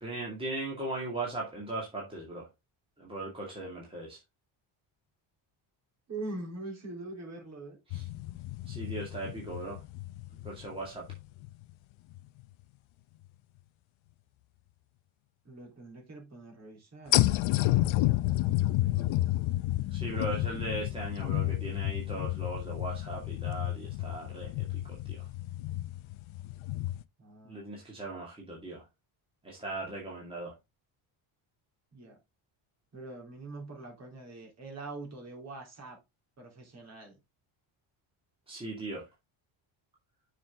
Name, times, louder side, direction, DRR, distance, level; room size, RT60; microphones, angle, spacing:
voice 1, 0.0-2.4 3.0-4.2 7.9-8.0 8.7-9.8 10.4-11.0 19.9-24.5 25.1-25.2 27.5-28.8 29.4-30.5 38.5-39.0, right 2 dB, 10° right, 2.2 m, -38 dB
voice 2, 6.1-7.8 15.5-19.3 20.4-20.6 27.2-27.7 31.9-32.2 32.9-36.0 36.4-37.2, right 2 dB, 30° right, 3.5 m, -44 dB
sound 1, 7.9-11.6 12.1-12.2 17.1-27.0, left 16 dB, 70° left, 0.7 m, -31 dB
6.9 x 6.1 x 3.7 m
cardioid pair, 165°, 49 cm